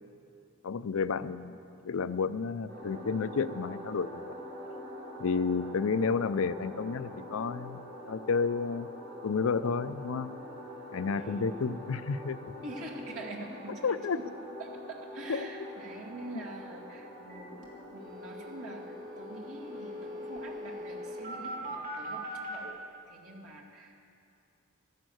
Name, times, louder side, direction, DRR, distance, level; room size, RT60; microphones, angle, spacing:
voice 1, 0.6-1.6 1.8-4.3 5.2-8.9 9.2-10.3 10.9-12.4 13.8-14.2 15.3-15.5, left 5 dB, 75° left, 13 dB, 0.5 m, -31 dB
sound 1, 2.7-21.3, equal, 55° right, 4.6 m, -45 dB
voice 2, 11.1-11.5 12.6-14.2 14.6-22.8 23.1-24.1, right 1 dB, 90° right, -2 dB, 2.4 m, -45 dB
sound 2, 17.3-17.4 17.6-17.7 18.0-22.6, equal, 40° right, 2.8 m, -41 dB
13.5 x 11.0 x 7.9 m, 2.6 s
head